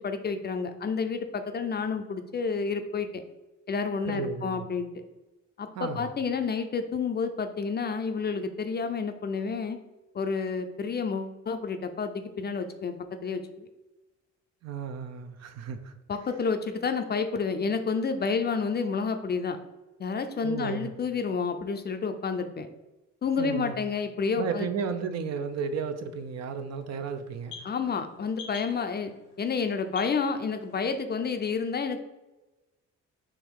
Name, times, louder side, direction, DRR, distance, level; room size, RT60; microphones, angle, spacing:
voice 1, 0.0-3.2 3.7-4.9 5.6-9.8 10.1-12.9 13.2-13.7 16.1-19.6 20.0-22.7 23.2-24.7 27.6-29.1 29.4-32.0, left 5 dB, 35° left, 8 dB, 0.4 m, -30 dB
voice 2, 4.1-4.6 5.7-6.1 14.6-15.9 20.4-20.9 23.4-23.8 24.4-27.7, right 5 dB, 60° right, 8 dB, 0.6 m, -33 dB
sound 1, 25.4-30.9, left 5 dB, 90° left, 0.9 m, -49 dB
3.7 x 3.0 x 4.6 m, 1.1 s
cardioid pair, 90°, 30 cm